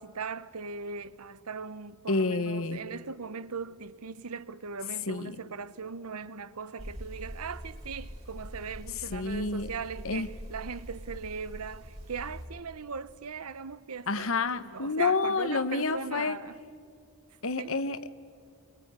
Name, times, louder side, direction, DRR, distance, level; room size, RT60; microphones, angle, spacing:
voice 1, 0.0-14.3 14.6-16.6 17.6-17.7, right 5 dB, 90° right, 0.9 m, -39 dB
voice 2, 2.1-2.8 5.1-5.4 9.1-9.7 10.0-10.3 14.1-16.4 17.4-18.1, left 3 dB, 65° left, 1.1 m, -29 dB
sound 1, 6.8-12.5, equal, 30° right, 4.2 m, -43 dB
25.5 x 23.0 x 9.6 m
head